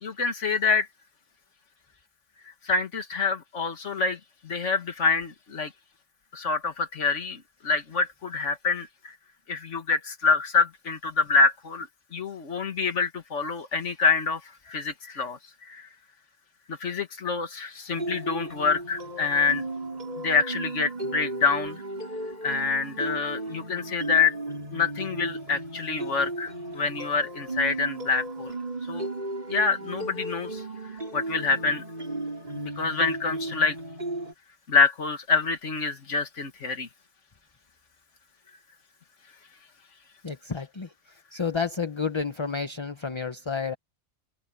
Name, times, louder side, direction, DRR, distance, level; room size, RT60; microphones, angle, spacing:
voice 1, 0.0-0.9 2.7-5.7 6.3-9.1 9.5-11.9 12.1-14.4 14.7-15.4 15.7-15.9 16.8-19.7 20.2-21.8 22.4-24.4 24.7-28.6 28.9-29.1 29.5-30.6 31.1-31.8 32.5-33.8 34.7-36.9, left 4 dB, 70° left, 2.1 m, -26 dB
sound 1, 17.9-34.3, right 2 dB, 35° right, 6.0 m, -35 dB
voice 2, 40.2-40.9 41.3-43.8, left 5 dB, 25° left, 0.9 m, -30 dB
open air
omnidirectional pair, 1.3 m